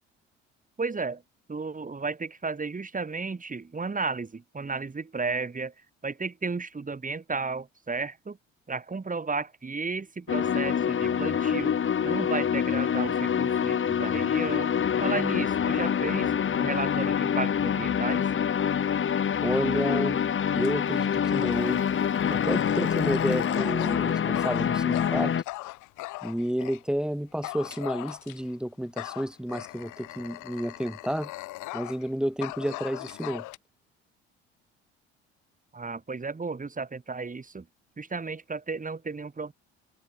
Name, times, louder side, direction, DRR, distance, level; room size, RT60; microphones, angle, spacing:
voice 1, 0.8-1.2 1.5-5.7 6.0-8.4 8.7-11.7 12.0-14.7 15.0-18.3 35.7-37.6 38.0-39.5, right 4 dB, 25° right, 8.0 m, -33 dB
sound 1, 10.3-25.4, left 8 dB, 40° left, 2.3 m, -26 dB
voice 2, 19.4-20.2 20.5-21.8 22.3-25.3 26.2-31.3 31.7-33.4, equal, ahead, 5.4 m, -31 dB
Dog, 20.6-26.8 27.4-28.5 29.0-32.1 32.4-33.6, left 19 dB, 65° left, 5.3 m, -40 dB
hypercardioid pair, 60°, 33 cm